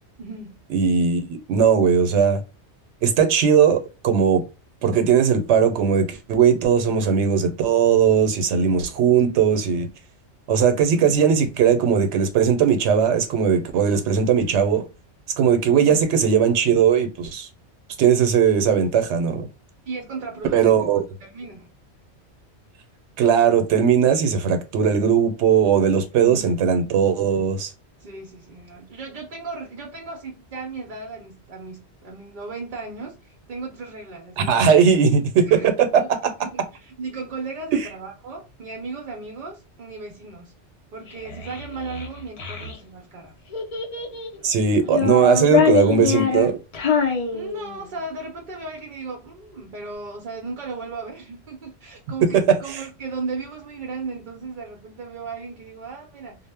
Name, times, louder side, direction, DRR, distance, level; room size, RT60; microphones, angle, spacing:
voice 1, 0.2-0.6 10.9-11.2 15.6-16.1 19.8-20.9 21.2-21.7 26.1-26.6 28.0-34.7 35.5-35.7 36.0-36.1 36.4-40.5 40.9-43.3 45.2-45.3 47.3-56.4, right 4 dB, 55° right, 0.6 m, -36 dB
voice 2, 0.7-2.4 3.0-4.4 4.8-9.9 10.5-14.8 15.4-17.5 18.0-19.5 20.5-21.0 23.2-27.7 34.4-36.3 37.7-37.9 44.4-46.6 52.3-52.6, right 7 dB, 85° right, 0.9 m, -18 dB
Child speech kid speaking, 41.1-42.8 43.5-44.4 44.8-48.0, left 6 dB, 45° left, 0.5 m, -24 dB
2.1 x 2.0 x 3.3 m
omnidirectional pair, 1.2 m